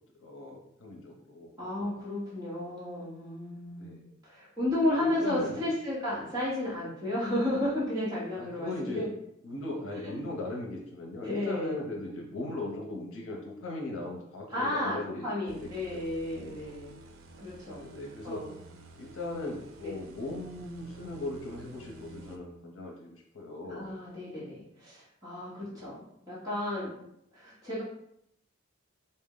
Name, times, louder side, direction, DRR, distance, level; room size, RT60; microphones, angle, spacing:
voice 1, 0.2-1.6 3.8-4.2 5.0-5.6 8.3-9.1 9.4-16.3 17.8-18.4 19.0-23.9 25.7-25.9, left 2 dB, 80° left, -1 dB, 0.7 m, -39 dB
voice 2, 1.6-9.1 10.0-10.1 11.2-11.8 14.5-17.0 17.4-17.9 18.2-18.5 23.7-26.0 26.3-26.9 27.3-27.8, left 1 dB, 20° right, -9 dB, 1.0 m, -33 dB
sound 1, 15.5-22.4, right 3 dB, 90° right, 0.5 m, -51 dB
4.2 x 2.1 x 3.7 m, 0.75 s
head